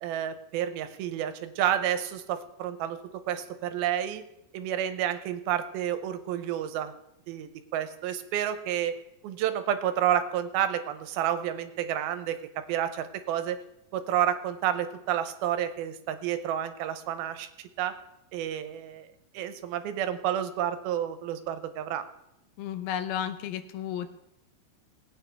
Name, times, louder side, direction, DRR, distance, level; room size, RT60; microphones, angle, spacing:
voice 1, 0.0-4.2 4.5-6.9 7.3-9.0 9.2-13.6 13.9-18.0 18.3-19.1 19.3-22.1, right 10 dB, 90° right, 10 dB, 2.6 m, -30 dB
voice 2, 22.6-24.1, left 9 dB, 80° left, 9 dB, 2.6 m, -33 dB
19.5 x 9.1 x 3.5 m, 0.86 s
omnidirectional pair, 4.3 m